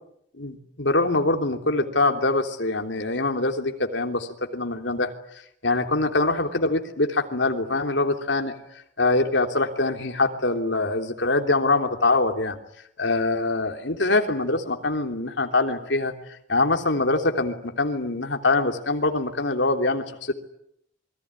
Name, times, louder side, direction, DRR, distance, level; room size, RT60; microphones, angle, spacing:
voice 1, 0.4-5.1 5.6-8.5 9.0-12.6 13.0-20.3, left 2 dB, 70° left, 5 dB, 3.3 m, -24 dB
27.5 x 21.5 x 9.8 m, 0.75 s
head